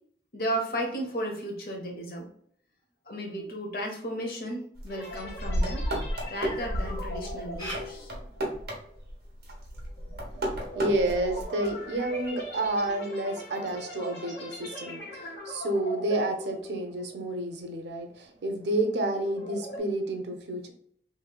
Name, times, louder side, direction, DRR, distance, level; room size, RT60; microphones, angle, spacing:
voice 1, 0.3-2.3 3.1-5.9 6.3-8.1, right 1 dB, 55° left, 1 dB, 0.9 m, -34 dB
sound 1, 4.7-9.1 9.4-11.4, equal, 60° right, 1.0 m, -32 dB
sound 2, 4.9-17.4 17.7-18.0 18.5-19.8, left 1 dB, 85° left, 1.4 m, -41 dB
Camera, 7.6-13.0, equal, 25° left, 1.5 m, -48 dB
voice 2, 10.7-20.7, right 1 dB, 80° right, 5 dB, 0.6 m, -30 dB
3.2 x 3.1 x 2.2 m, 0.64 s
head